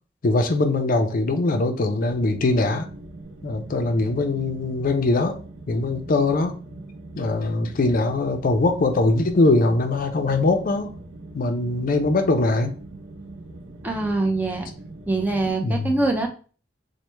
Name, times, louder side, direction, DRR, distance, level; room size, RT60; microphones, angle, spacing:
voice 1, 0.2-2.9 3.4-5.4 5.7-6.6 7.2-10.9 11.3-12.8 15.6-15.9, left 2 dB, 50° left, 0.5 m, -22 dB
sound 1, 2.0-15.5, right 2 dB, 85° right, 0.5 m, -41 dB
voice 2, 13.8-14.7 15.1-16.3, right 2 dB, 10° right, 0.5 m, -23 dB
3.2 x 2.1 x 3.1 m
head